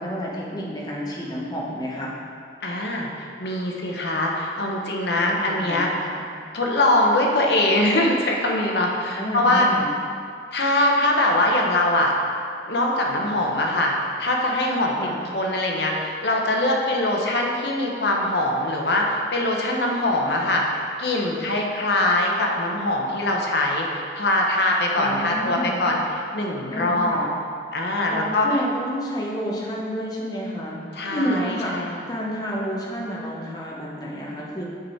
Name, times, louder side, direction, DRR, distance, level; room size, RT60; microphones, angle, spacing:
voice 1, 0.0-2.1 5.1-6.3 9.2-9.9 15.0-15.2 25.0-25.8 26.7-27.2 28.1-34.6, equal, 20° left, -4 dB, 1.1 m, -30 dB
voice 2, 2.6-5.9 6.5-9.7 10.5-12.1 12.7-13.9 14.2-14.9 15.3-26.0 26.3-27.3 27.7-28.5 30.9-32.0, left 1 dB, 65° left, 0 dB, 0.9 m, -22 dB
6.7 x 5.0 x 4.5 m, 2.3 s
head